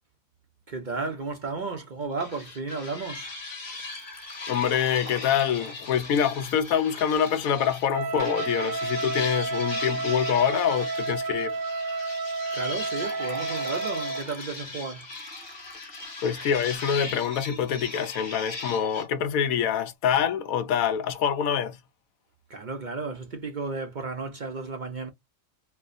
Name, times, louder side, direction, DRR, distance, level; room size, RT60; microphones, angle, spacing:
voice 1, 0.7-3.3 12.5-15.1 16.0-16.1 22.5-25.1, right 4 dB, 45° right, 0.6 m, -33 dB
sound 1, 2.2-7.9 8.2-19.1, left 3 dB, 45° left, 1.7 m, -39 dB
Liquid, 3.8-8.8 12.5-17.3 17.6-17.7 18.6-18.7, equal, 10° left, 0.6 m, -48 dB
voice 2, 4.5-11.5 16.2-21.8, left 8 dB, 85° left, 1.1 m, -25 dB
Wind instrument woodwind instrument, 7.9-14.3, right 3 dB, 85° right, 1.1 m, -31 dB
4.4 x 2.1 x 2.5 m
omnidirectional pair, 1.4 m